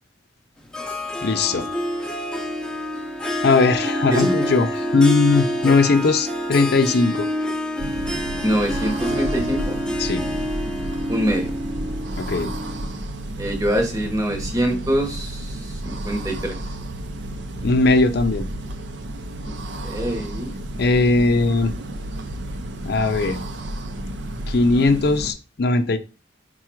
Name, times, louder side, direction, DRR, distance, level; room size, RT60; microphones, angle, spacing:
Harp, 0.7-12.9, equal, 5° left, 0.6 m, -27 dB
voice 1, 1.2-1.6 3.4-7.3 10.0-10.2 12.2-12.5 17.6-18.5 20.8-21.7 22.8-23.4 24.5-26.0, left 3 dB, 60° left, 0.5 m, -19 dB
sound 1, 7.8-25.3, right 1 dB, 70° right, 0.5 m, -32 dB
voice 2, 8.4-9.8 11.1-11.5 13.4-16.6 19.4-19.5 19.8-20.5, equal, 20° right, 0.9 m, -24 dB
4.7 x 2.3 x 4.4 m
head